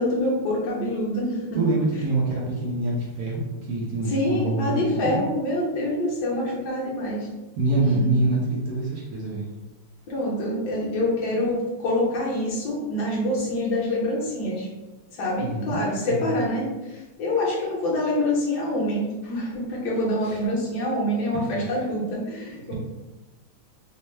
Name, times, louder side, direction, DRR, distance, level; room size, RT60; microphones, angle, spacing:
voice 1, 0.0-1.6 4.1-7.3 8.0-8.1 10.1-14.7 15.1-22.7, left 1 dB, 55° left, -5 dB, 1.4 m, -26 dB
voice 2, 1.5-3.4 3.7-5.2 7.6-9.4 15.4-15.8 16.1-16.3 20.2-20.4 21.5-21.9 22.5-22.7, right 2 dB, 70° right, -4 dB, 0.9 m, -25 dB
4.4 x 2.2 x 3.2 m, 1.1 s
omnidirectional pair, 2.4 m